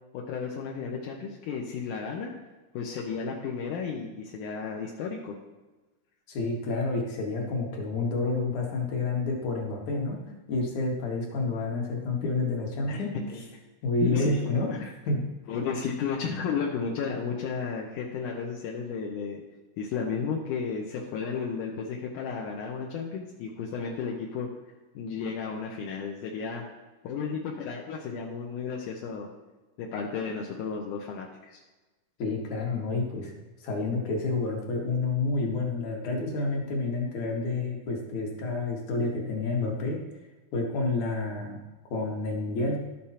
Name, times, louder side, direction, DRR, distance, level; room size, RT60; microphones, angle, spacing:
voice 1, 0.1-2.3 2.7-5.3 12.9-13.4 14.0-14.4 14.7-14.9 15.5-19.4 19.8-24.5 24.9-26.7 27.0-29.3 29.8-31.6, left 5 dB, 85° left, -1 dB, 2.4 m, -33 dB
voice 2, 6.3-10.2 10.5-13.1 13.8-14.7 15.1-15.2 32.2-33.3 33.6-40.0 40.5-41.6 41.9-42.8, left 3 dB, 70° left, 0 dB, 2.9 m, -29 dB
12.0 x 7.2 x 4.3 m, 1.2 s
omnidirectional pair, 3.5 m